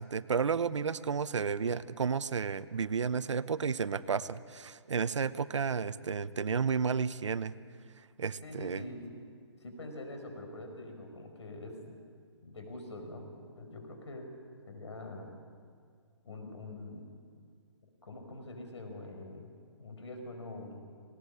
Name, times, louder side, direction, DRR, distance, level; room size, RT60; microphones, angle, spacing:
voice 1, 0.0-7.5 8.2-8.8, right 6 dB, 85° right, 15 dB, 0.8 m, -32 dB
voice 2, 8.4-9.1 9.6-12.0 12.4-14.3 14.7-15.3 16.2-17.1 18.0-20.8, left 2 dB, 75° left, 5 dB, 5.3 m, -44 dB
20.0 x 18.0 x 8.6 m, 2.1 s
hypercardioid pair, 175°, 15 cm